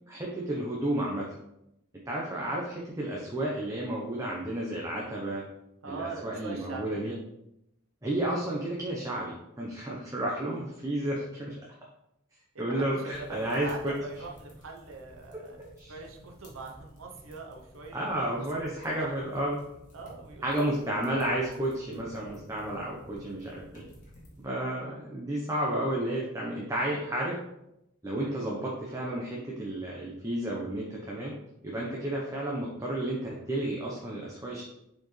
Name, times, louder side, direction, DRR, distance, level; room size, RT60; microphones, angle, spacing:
voice 1, 0.1-1.3 2.1-5.4 5.8-7.1 8.0-11.7 12.6-13.9 15.8-15.9 17.9-19.6 20.4-23.8 24.4-27.4 28.0-31.3 31.6-34.6, right 1 dB, 15° right, -4 dB, 0.8 m, -32 dB
voice 2, 5.8-7.2 10.4-10.7 12.5-15.6 15.9-18.2 18.5-19.2 19.9-20.7 24.7-25.1 28.2-28.5, right 3 dB, 75° right, 1 dB, 0.8 m, -43 dB
sound 1, 13.1-24.4, equal, 40° left, 1.7 m, -53 dB
6.6 x 4.4 x 3.2 m, 0.84 s
head